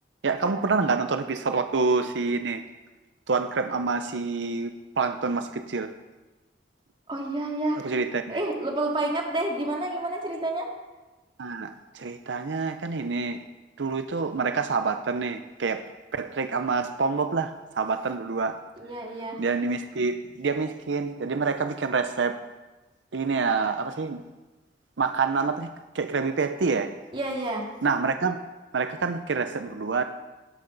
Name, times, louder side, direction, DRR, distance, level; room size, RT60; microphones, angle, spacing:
voice 1, 0.2-2.6 3.3-5.9 7.8-8.4 11.4-13.4 13.8-15.8 16.1-18.6 19.4-22.4 23.1-24.2 25.0-25.7 25.9-26.9 27.8-28.4 28.7-30.0, right 4 dB, 80° right, 8 dB, 0.6 m, -27 dB
voice 2, 7.1-7.9 8.3-10.7 18.8-19.4 27.1-27.7, right 1 dB, 30° right, -1 dB, 2.4 m, -29 dB
17.5 x 11.0 x 4.0 m, 1.2 s
head